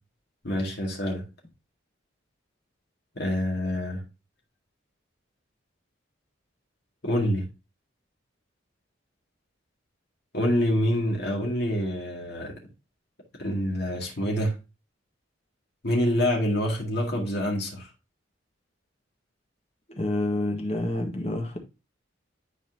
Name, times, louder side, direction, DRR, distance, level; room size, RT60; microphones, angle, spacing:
voice 1, 0.4-1.2 3.1-4.0 7.0-7.5 10.3-12.6 13.4-14.5 15.8-17.9, equal, 55° left, 2.0 m, -26 dB
voice 2, 19.9-21.6, left 1 dB, 30° left, 1.4 m, -28 dB
10.5 x 4.3 x 2.7 m
head